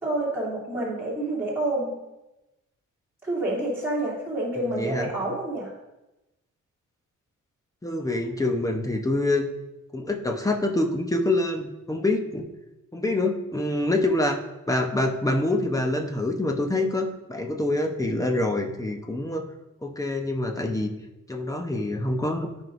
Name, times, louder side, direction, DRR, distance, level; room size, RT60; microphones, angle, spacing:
voice 1, 0.0-1.9 3.2-5.7, right 1 dB, 5° right, -8 dB, 2.7 m, -28 dB
voice 2, 4.6-5.1 7.8-9.5 9.9-12.4 12.9-14.4 14.7-19.5 19.8-20.9 21.3-22.5, left 2 dB, 10° left, 4 dB, 0.8 m, -26 dB
14.0 x 5.2 x 2.6 m, 0.99 s
cardioid pair, 120°, 32 cm